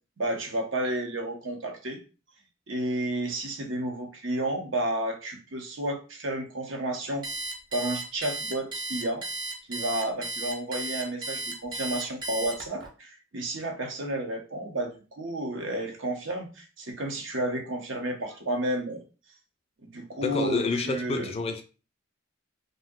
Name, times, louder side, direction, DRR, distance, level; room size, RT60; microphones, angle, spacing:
voice 1, 0.2-2.0 2.7-7.3 7.7-9.2 9.7-19.0 19.8-21.3, right 1 dB, 70° right, 0.7 m, -31 dB
Alarm, 7.2-12.9, right 2 dB, 20° right, 0.7 m, -34 dB
voice 2, 20.2-21.6, left 3 dB, 30° left, 0.3 m, -28 dB
2.6 x 2.1 x 3.6 m
head